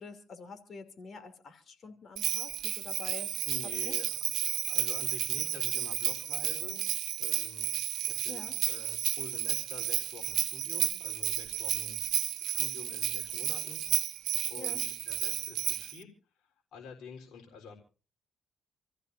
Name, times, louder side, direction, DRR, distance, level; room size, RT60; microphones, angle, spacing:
voice 1, 0.0-3.3 3.8-4.0 8.3-8.5 14.6-14.9, left 4 dB, 50° left, 7 dB, 2.9 m, -47 dB
Bell, 2.2-16.0, right 12 dB, 80° right, 0.8 m, -32 dB
voice 2, 3.4-4.1 4.7-6.9 7.2-7.8 8.1-12.0 12.4-14.0 14.5-16.1 16.4-17.8, left 6 dB, 75° left, 0 dB, 3.9 m, -48 dB
27.5 x 14.5 x 2.7 m, 0.36 s
cardioid pair, 90°, 0 cm